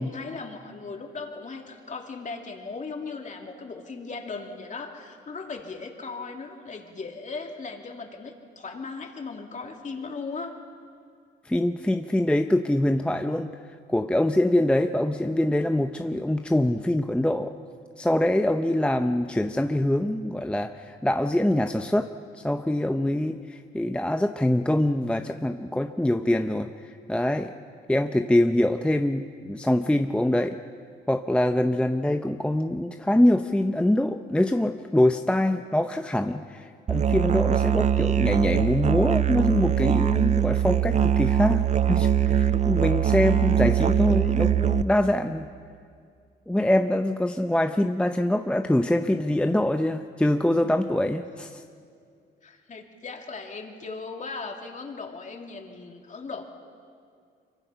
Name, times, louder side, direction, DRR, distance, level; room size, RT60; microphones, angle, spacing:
voice 1, 0.0-10.6 52.4-56.4, left 4 dB, 40° left, 2 dB, 2.8 m, -37 dB
voice 2, 11.5-13.5 13.9-17.5 18.0-22.1 22.3-26.7 27.1-27.5 27.9-30.6 31.1-45.5 46.5-51.6, left 1 dB, 5° left, 7 dB, 0.7 m, -24 dB
Musical instrument, 36.9-44.8, right 10 dB, 35° right, 0.6 m, -22 dB
25.0 x 23.5 x 5.8 m, 2.3 s
cardioid pair, 90°, 20 cm